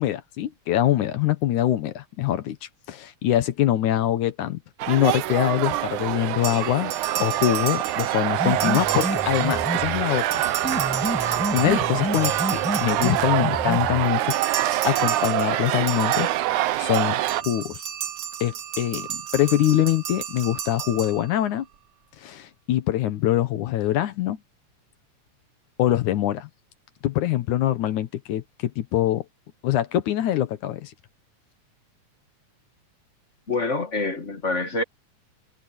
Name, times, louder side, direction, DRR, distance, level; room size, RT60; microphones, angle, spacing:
voice 1, 0.0-4.6 4.9-10.4 11.5-17.8 18.4-21.7 22.2-24.4 25.8-26.5 27.0-29.3 29.6-30.9, left 12 dB, 70° left, 2.4 m, -24 dB
sound 1, 4.8-17.4, right 14 dB, 75° right, 2.2 m, -25 dB
sound 2, 6.4-9.9 10.2-13.6 14.3-21.6, right 10 dB, 55° right, 2.0 m, -33 dB
sound 3, 8.3-10.1 10.6-14.1, left 1 dB, 5° left, 1.0 m, -30 dB
voice 2, 33.5-34.8, left 3 dB, 35° left, 1.2 m, -26 dB
omnidirectional pair, 3.7 m